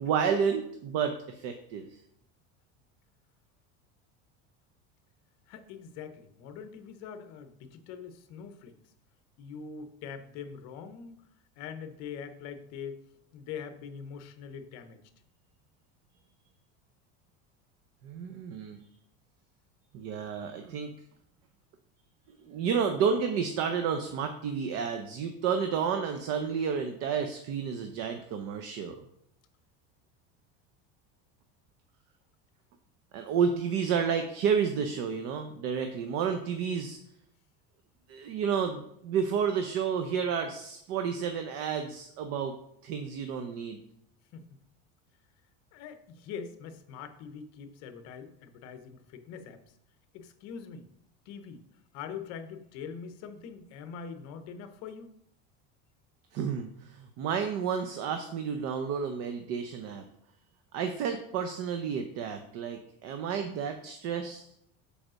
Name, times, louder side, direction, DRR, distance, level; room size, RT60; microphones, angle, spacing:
voice 1, 0.0-1.9 18.0-18.8 19.9-20.9 22.3-29.0 33.1-37.0 38.1-42.5 42.8-43.8 56.3-60.0 60.7-64.4, right 7 dB, 50° right, 6 dB, 0.6 m, -31 dB
voice 2, 5.5-8.7 9.4-11.2 11.6-13.0 13.3-15.0 44.3-44.6 45.7-49.6 50.1-50.9 51.3-51.6 51.9-55.1, left 6 dB, 55° left, 9 dB, 0.8 m, -43 dB
5.1 x 4.9 x 6.1 m, 0.75 s
cardioid pair, 165°, 32 cm